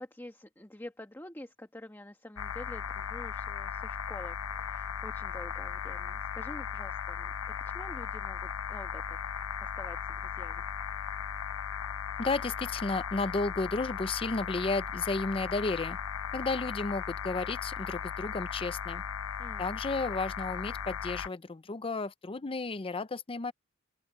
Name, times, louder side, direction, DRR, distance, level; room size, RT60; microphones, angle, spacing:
voice 1, 0.0-9.2 9.6-10.6 19.4-19.8, left 1 dB, 10° left, 1.8 m, -47 dB
sound 1, 2.4-21.3, left 8 dB, 90° left, 0.5 m, -37 dB
voice 2, 12.2-16.0 16.3-19.0 19.6-23.5, left 3 dB, 25° left, 0.6 m, -33 dB
open air
head